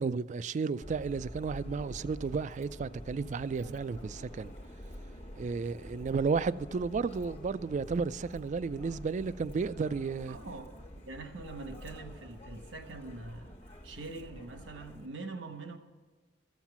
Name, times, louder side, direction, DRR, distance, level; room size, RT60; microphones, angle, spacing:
voice 1, 0.0-4.5 5.4-10.4, right 5 dB, 40° right, 0.3 m, -33 dB
Subway metro underground, 0.8-15.1, equal, 35° left, 1.2 m, -47 dB
voice 2, 10.3-10.7 11.0-15.8, right 3 dB, 80° right, 1.1 m, -44 dB
14.0 x 7.4 x 5.9 m
head